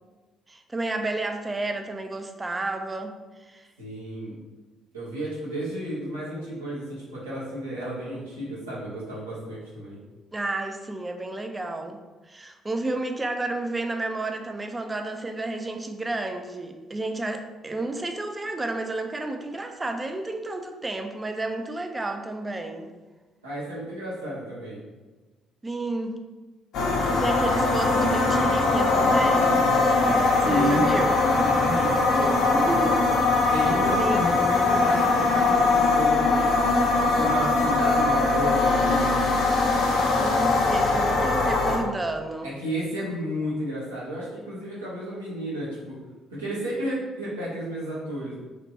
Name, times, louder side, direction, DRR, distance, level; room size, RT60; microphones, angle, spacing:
voice 1, 0.5-3.7 10.3-22.9 25.6-26.2 27.0-29.6 30.0-31.2 32.5-33.1 33.4-33.7 34.0-34.3 40.2-42.5, right 2 dB, 20° right, 5 dB, 0.4 m, -31 dB
voice 2, 3.8-4.4 4.9-10.0 23.4-24.8 30.4-32.8 33.5-36.6 37.0-39.1 42.4-46.0 46.3-48.4, equal, 90° right, -9 dB, 1.0 m, -32 dB
sound 1, 26.7-41.8, left 3 dB, 65° left, 0.6 m, -21 dB
3.2 x 2.9 x 2.8 m, 1.3 s
figure-of-eight pair, 45°, 0 cm